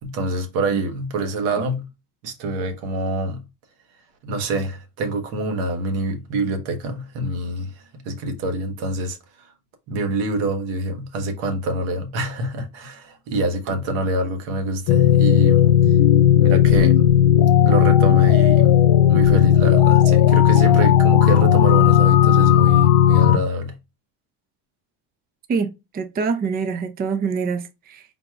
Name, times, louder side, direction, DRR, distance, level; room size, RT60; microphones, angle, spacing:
voice 1, 0.0-1.9 2.2-3.4 4.2-9.5 9.9-15.7 16.4-17.1 17.6-18.7 19.1-23.7, right 2 dB, 80° right, 1.2 m, -26 dB
sound 1, 14.9-23.4, left 10 dB, 70° left, 0.6 m, -14 dB
voice 2, 25.5-28.0, right 5 dB, 20° right, 0.4 m, -25 dB
4.0 x 2.3 x 4.5 m
supercardioid pair, 105°, 46 cm